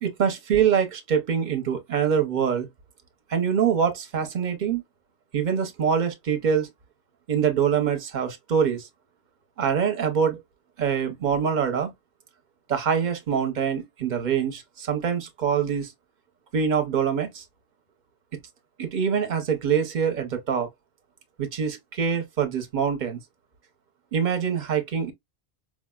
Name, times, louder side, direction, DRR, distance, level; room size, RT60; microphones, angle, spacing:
voice 1, 0.0-2.7 3.3-4.8 5.3-6.7 7.3-8.9 9.6-10.4 10.8-11.9 12.7-15.9 16.5-17.4 18.8-20.7 21.4-23.2 24.1-25.1, right 7 dB, 45° right, 0.7 m, -24 dB
4.7 x 2.0 x 2.2 m
omnidirectional pair, 1.2 m